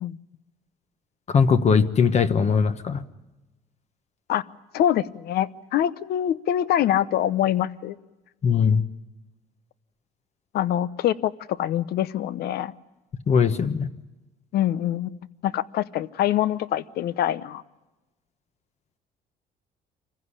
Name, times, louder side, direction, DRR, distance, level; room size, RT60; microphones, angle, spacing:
voice 1, 1.3-3.0 8.4-8.8 13.3-13.9, left 6 dB, 40° left, 10 dB, 1.2 m, -20 dB
voice 2, 4.7-8.0 10.5-12.7 14.5-15.2 15.4-17.6, left 11 dB, 70° left, 17 dB, 0.9 m, -24 dB
25.5 x 15.5 x 9.8 m, 1.1 s
cardioid pair, 110°, 17 cm